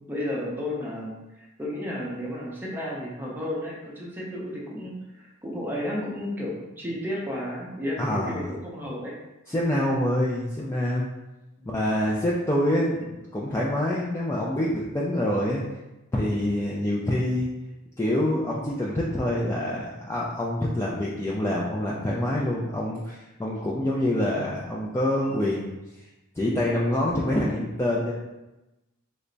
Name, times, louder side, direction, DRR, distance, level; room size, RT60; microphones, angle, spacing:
voice 1, 0.1-9.1 11.6-11.7, left 1 dB, 10° right, -4 dB, 0.7 m, -33 dB
voice 2, 8.0-8.5 9.5-11.1 11.7-15.6 16.1-17.5 18.0-25.7 26.4-28.1, left 1 dB, 10° left, -5 dB, 0.3 m, -26 dB
3.3 x 2.1 x 3.8 m, 1.0 s
head